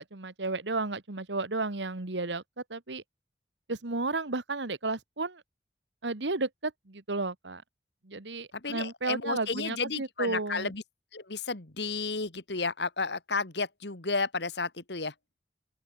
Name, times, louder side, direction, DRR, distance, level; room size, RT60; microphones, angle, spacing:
voice 1, 0.0-2.4 2.7-3.0 3.7-5.4 6.0-7.6 8.0-10.7, right 3 dB, 85° right, 1.7 m, -33 dB
voice 2, 8.5-10.8 11.1-15.1, left 4 dB, 75° left, 2.5 m, -32 dB
open air
head